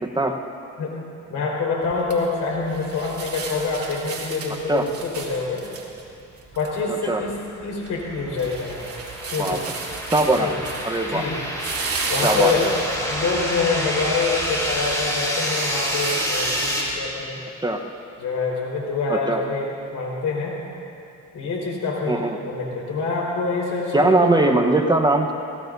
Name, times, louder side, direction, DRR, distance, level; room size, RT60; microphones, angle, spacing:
voice 1, 0.0-0.4 4.7-4.9 6.9-7.2 9.4-9.6 10.1-10.5 10.8-11.2 12.2-12.7 17.6-17.8 19.1-19.4 22.1-22.4 23.9-25.3, right 2 dB, 15° right, 3 dB, 1.0 m, -20 dB
voice 2, 1.3-5.6 6.5-7.4 7.6-8.8 9.2-9.7 10.3-10.6 11.1-11.4 12.1-17.4 18.2-20.6 21.3-24.5, left 4 dB, 80° left, -2 dB, 4.4 m, -26 dB
sound 1, 1.8-17.0, right 4 dB, 50° right, 2.7 m, -35 dB
sound 2, 7.8-16.8, equal, 10° left, 4.2 m, -28 dB
23.5 x 17.0 x 2.7 m, 2.6 s
cardioid pair, 90°, 30 cm